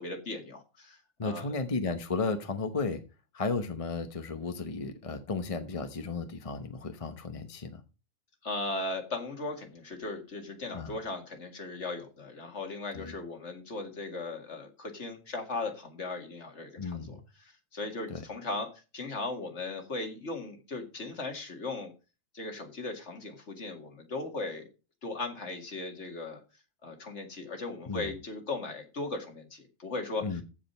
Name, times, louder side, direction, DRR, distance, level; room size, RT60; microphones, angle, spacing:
voice 1, 0.0-1.6 8.4-21.9 22.3-24.6 25.0-26.4 26.8-30.4, left 3 dB, 55° left, 5 dB, 2.2 m, -38 dB
voice 2, 1.2-3.0 3.3-7.8 10.7-11.0 12.9-13.1 16.8-17.2 18.1-18.2 27.9-28.1 30.2-30.4, left 4 dB, 30° left, 8 dB, 0.9 m, -34 dB
15.0 x 5.0 x 5.5 m, 0.32 s
omnidirectional pair, 1.4 m